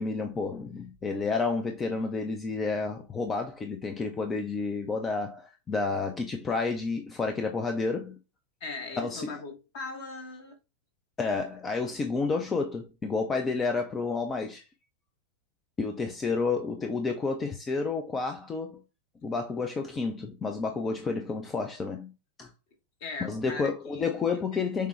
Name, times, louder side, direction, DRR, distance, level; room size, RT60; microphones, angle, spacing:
voice 1, 0.0-8.2 9.0-9.4 11.2-14.6 15.8-18.8 19.2-22.1 22.4-22.5 23.2-24.9, left 4 dB, 20° left, 0.6 m, -30 dB
voice 2, 8.6-10.6 23.0-24.6, left 3 dB, 50° left, 1.4 m, -40 dB
6.6 x 2.2 x 3.3 m
figure-of-eight pair, 90°, 0 cm